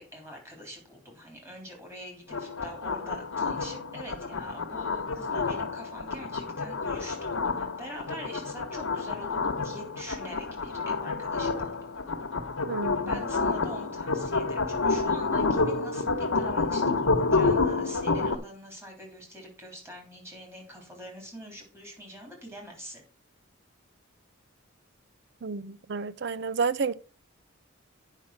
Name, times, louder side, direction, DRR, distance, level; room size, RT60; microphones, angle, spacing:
voice 1, 0.0-11.7 13.1-23.0, equal, 10° right, 3.2 m, -44 dB
sound 1, 2.3-18.4, left 3 dB, 85° left, 1.2 m, -29 dB
voice 2, 12.7-13.2 25.4-26.9, right 5 dB, 55° right, 0.5 m, -30 dB
8.9 x 5.7 x 5.8 m
head